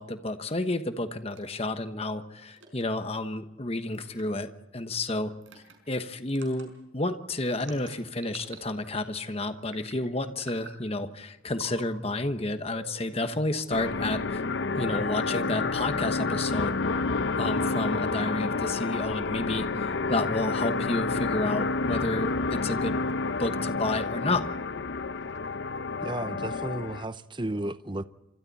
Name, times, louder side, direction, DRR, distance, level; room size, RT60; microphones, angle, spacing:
voice 1, 0.0-14.4 14.8-16.8 17.4-23.0 23.4-24.5, left 2 dB, 30° left, 1.2 m, -31 dB
sound 1, 1.3-1.6 2.5-2.8 3.9-4.2 5.4-5.7 6.3-6.7 7.5-8.6 8.9-9.3 9.7-10.0 10.4-10.8 11.5-11.9 12.7-13.6, right 5 dB, 70° right, 5.4 m, -47 dB
sound 2, 13.7-27.0, left 3 dB, 60° left, 0.7 m, -29 dB
voice 2, 26.0-28.1, right 1 dB, 25° right, 0.7 m, -33 dB
28.5 x 26.0 x 4.2 m
head